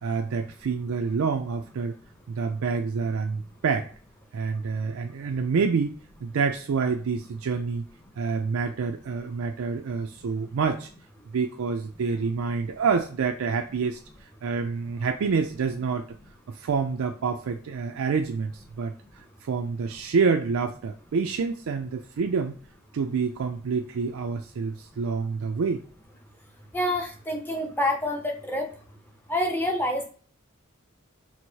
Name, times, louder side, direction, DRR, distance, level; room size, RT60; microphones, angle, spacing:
voice 1, 0.0-1.9 2.3-3.9 4.3-7.8 8.2-10.9 11.3-14.0 14.4-16.0 16.5-18.9 19.4-22.5 22.9-25.8, right 5 dB, 70° right, 4 dB, 0.4 m, -27 dB
voice 2, 26.7-28.7 29.3-30.1, left 1 dB, 10° left, 1 dB, 0.6 m, -27 dB
4.5 x 2.0 x 2.7 m, 0.42 s
head